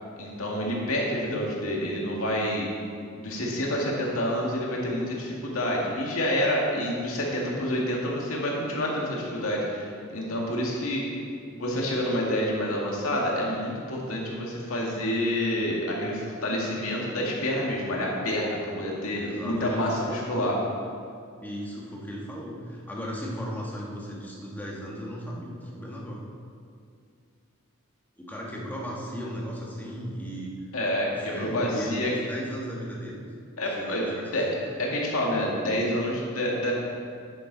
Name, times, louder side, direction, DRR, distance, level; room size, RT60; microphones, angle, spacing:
voice 1, 0.2-2.7 3.2-11.0 11.5-20.6 30.7-32.1 33.6-34.5 34.8-36.7, left 1 dB, 85° left, -3 dB, 2.1 m, -28 dB
voice 2, 19.1-20.6 21.4-26.3 28.2-30.5 31.1-33.2 33.8-34.6, equal, 10° left, -4 dB, 1.6 m, -36 dB
9.9 x 9.4 x 4.0 m, 2.3 s
head